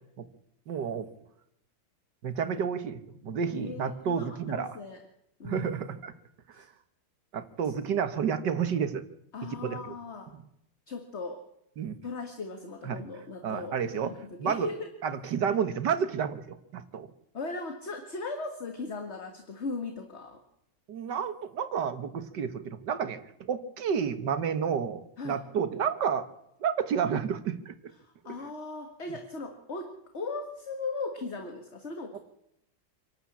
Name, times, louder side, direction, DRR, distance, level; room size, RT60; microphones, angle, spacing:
voice 1, 0.7-1.1 2.2-4.8 5.4-6.1 6.6-6.7 7.3-9.0 9.6-10.0 10.3-10.4 11.8-12.0 12.8-13.0 13.4-14.1 14.4-14.7 15.0-17.1 20.9-23.2 23.5-26.3 26.6-27.8 28.3-28.4 32.1-32.2, right 7 dB, 70° right, 10 dB, 2.0 m, -30 dB
voice 2, 3.5-5.0 5.4-5.7 6.5-6.7 9.3-10.3 10.9-11.4 12.0-13.8 14.0-14.9 17.3-20.4 25.2-25.4 28.0-32.2, left 3 dB, 40° left, 6 dB, 1.8 m, -38 dB
26.0 x 12.0 x 8.6 m, 0.80 s
omnidirectional pair, 2.0 m